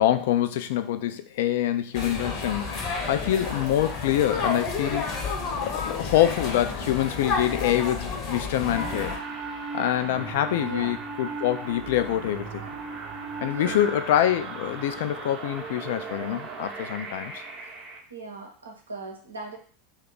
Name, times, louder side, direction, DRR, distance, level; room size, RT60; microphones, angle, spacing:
voice 1, 0.0-9.1 9.7-12.6 13.4-17.3, left 12 dB, 60° left, 10 dB, 0.3 m, -25 dB
sound 1, 1.9-9.2, left 4 dB, 40° left, 0.8 m, -30 dB
voice 2, 3.1-3.5 10.6-11.0 13.4-14.1 18.1-19.6, right 3 dB, 80° right, 1 dB, 0.8 m, -39 dB
sound 2, 8.7-18.0, right 4 dB, 30° right, 0.7 m, -37 dB
2.7 x 2.3 x 3.8 m, 0.42 s
figure-of-eight pair, 80°, 0 cm